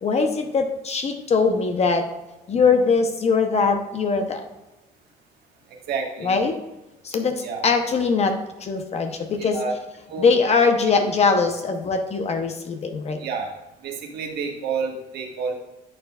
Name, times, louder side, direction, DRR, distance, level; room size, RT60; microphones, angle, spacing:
voice 1, 0.0-2.1 2.5-4.4 6.2-6.6 7.0-8.3 8.6-9.6 10.2-13.2, left 4 dB, 40° left, 5 dB, 0.8 m, -21 dB
voice 2, 5.7-6.3 7.4-7.6 9.4-9.8 10.1-10.3 10.9-11.1 13.2-13.5 13.8-15.5, right 5 dB, 70° right, 2 dB, 1.5 m, -29 dB
11.0 x 6.6 x 2.4 m, 1.0 s
cardioid pair, 110°, 17 cm